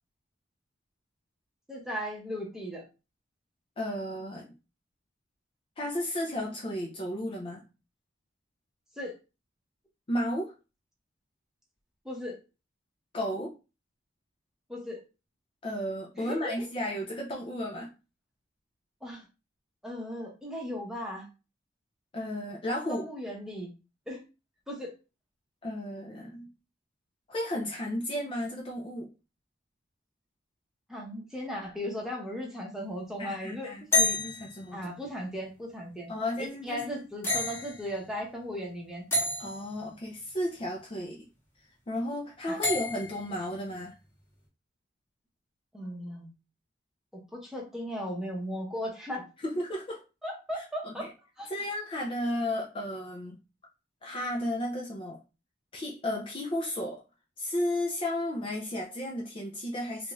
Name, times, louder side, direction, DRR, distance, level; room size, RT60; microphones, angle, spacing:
voice 1, 1.7-2.8 9.0-9.2 12.0-12.4 14.7-15.0 16.1-16.7 19.0-19.2 19.8-21.3 22.9-23.7 24.1-24.2 24.7-24.9 30.9-33.7 34.7-36.1 36.4-39.0 42.5-42.6 45.7-46.3 47.3-49.3 50.2-51.0 51.4-51.5, equal, 5° right, -2 dB, 0.8 m, -37 dB
voice 2, 3.8-4.5 5.8-7.6 10.1-10.5 13.1-13.5 15.6-17.9 22.1-23.1 25.6-26.5 27.3-29.1 33.2-35.0 36.1-37.0 39.4-41.3 41.9-44.0 49.4-50.0 50.5-51.1 51.5-53.4 54.0-55.2 55.7-57.0 57.4-60.1, left 1 dB, 30° left, -1 dB, 0.4 m, -33 dB
sound 1, 33.9-34.6 37.2-37.8 39.1-39.6 42.6-43.3, left 2 dB, 15° left, 1.0 m, -28 dB
2.5 x 2.3 x 3.0 m, 0.29 s
head